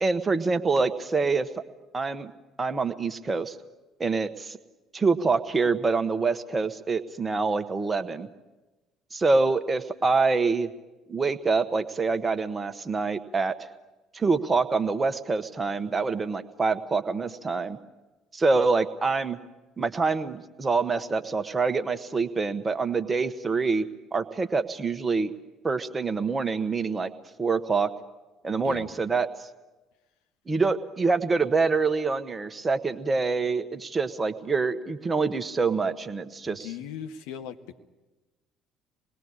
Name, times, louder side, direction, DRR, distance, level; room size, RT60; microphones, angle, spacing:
voice 1, 0.0-1.5 1.9-2.3 2.6-3.5 4.0-4.6 4.9-8.3 9.1-10.7 11.1-13.5 14.1-17.8 18.3-19.4 19.8-23.8 24.1-25.3 25.6-27.1 27.4-27.9 28.4-29.5 30.5-36.7, right 4 dB, 25° right, 10 dB, 1.6 m, -26 dB
voice 2, 36.4-37.8, left 9 dB, 65° left, 7 dB, 1.5 m, -38 dB
26.5 x 20.5 x 9.9 m, 1.2 s
figure-of-eight pair, 55°, 0 cm